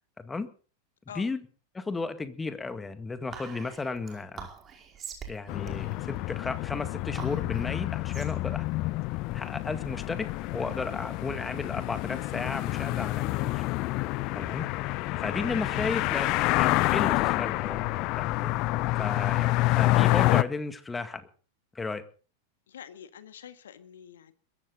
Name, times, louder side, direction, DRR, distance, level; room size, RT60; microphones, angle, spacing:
voice 1, 0.2-0.5 1.2-1.4 1.7-4.5 5.3-8.7 9.3-10.3 10.5-13.7 14.3-14.6 15.2-17.9 18.2-18.5 19.0-21.2 21.8-22.0, left 3 dB, 10° left, 10 dB, 2.0 m, -34 dB
Whispering, 3.3-10.0, right 6 dB, 25° right, 5.0 m, -45 dB
sound 1, 5.5-20.4, left 19 dB, 40° left, 0.7 m, -28 dB
voice 2, 22.7-24.3, left 9 dB, 65° left, 10 dB, 1.9 m, -46 dB
22.0 x 15.0 x 4.0 m, 0.40 s
figure-of-eight pair, 90°, 0 cm